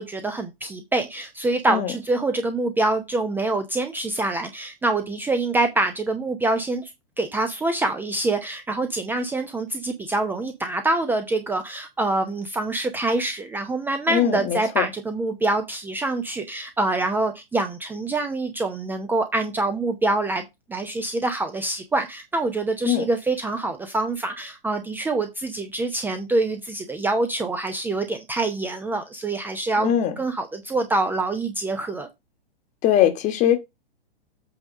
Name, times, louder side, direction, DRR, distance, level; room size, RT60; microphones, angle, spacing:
voice 1, 0.0-6.9 7.2-20.4 20.7-29.9 30.2-32.1, right 2 dB, 5° right, 0.8 m, -25 dB
voice 2, 14.1-14.9 22.8-23.1 29.8-30.1 32.8-33.6, left 10 dB, 25° left, 1.3 m, -21 dB
8.0 x 3.5 x 6.3 m
figure-of-eight pair, 110°, 29 cm